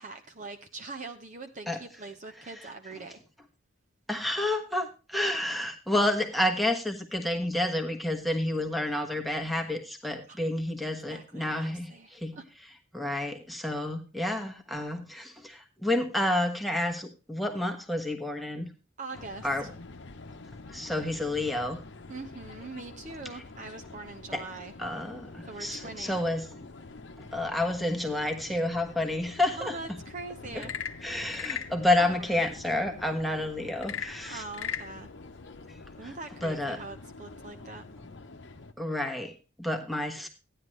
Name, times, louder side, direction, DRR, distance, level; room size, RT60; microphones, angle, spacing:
voice 1, 0.0-3.2 10.3-10.4 11.1-12.4 19.0-19.5 22.1-24.7 25.5-26.2 29.6-30.7 32.0-32.5 34.3-35.1 36.0-37.9, right 3 dB, 40° right, 4 dB, 0.9 m, -42 dB
voice 2, 4.1-12.4 12.9-18.7 19.4-19.7 20.7-21.8 23.3-23.4 24.3-24.4 24.8-26.6 27.2-29.8 30.5-30.6 31.0-34.4 36.0-36.1 36.4-36.8 38.8-40.3, left 1 dB, ahead, 2 dB, 1.3 m, -30 dB
sound 1, 19.1-38.7, left 3 dB, 60° left, 0.9 m, -47 dB
Frog / Percussion / Wood, 30.5-31.8 33.8-34.9, left 8 dB, 80° left, 0.8 m, -36 dB
14.5 x 10.0 x 3.2 m, 0.30 s
head